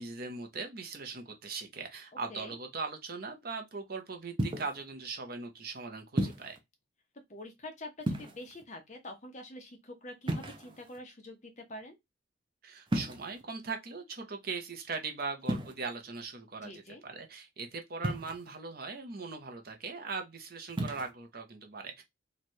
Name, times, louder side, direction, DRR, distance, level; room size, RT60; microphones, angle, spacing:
voice 1, 0.0-6.6 12.6-22.0, right 4 dB, 50° right, 0.8 m, -40 dB
sound 1, 4.4-4.8 6.2-6.6 8.0-8.6 10.3-11.0 12.9-13.4 15.4-15.7 18.0-18.6 20.7-21.1, right 1 dB, 25° right, 0.5 m, -33 dB
voice 2, 7.3-11.9 16.6-17.0, left 1 dB, 35° left, 0.9 m, -46 dB
3.1 x 2.4 x 4.3 m
head